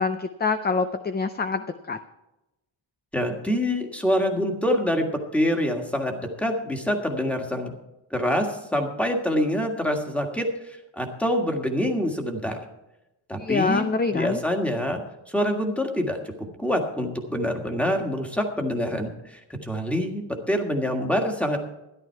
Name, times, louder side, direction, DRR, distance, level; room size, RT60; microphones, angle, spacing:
voice 1, 0.0-2.0 13.4-14.4, left 4 dB, 20° left, 8 dB, 0.5 m, -25 dB
voice 2, 3.1-7.7 8.1-12.6 13.3-15.0 15.3-21.6, equal, 5° left, 3 dB, 1.7 m, -26 dB
13.5 x 11.0 x 4.6 m, 0.94 s
wide cardioid pair, 150°, 48 cm